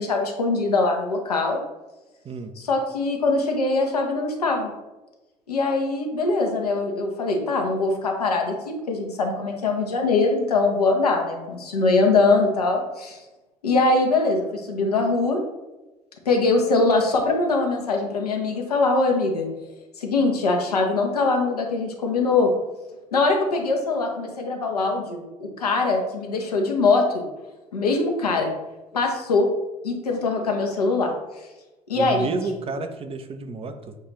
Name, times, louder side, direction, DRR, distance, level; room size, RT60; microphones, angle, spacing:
voice 1, 0.0-1.6 2.6-4.7 5.5-8.5 8.9-13.2 13.6-15.4 16.3-19.5 20.0-22.5 23.1-27.2 27.7-28.5 28.9-29.5 29.8-31.1 31.9-32.3, left 3 dB, 85° left, 2 dB, 0.7 m, -22 dB
voice 2, 31.9-34.0, right 3 dB, 30° right, 8 dB, 0.5 m, -31 dB
6.7 x 2.4 x 3.0 m, 1.1 s
figure-of-eight pair, 60°, 19 cm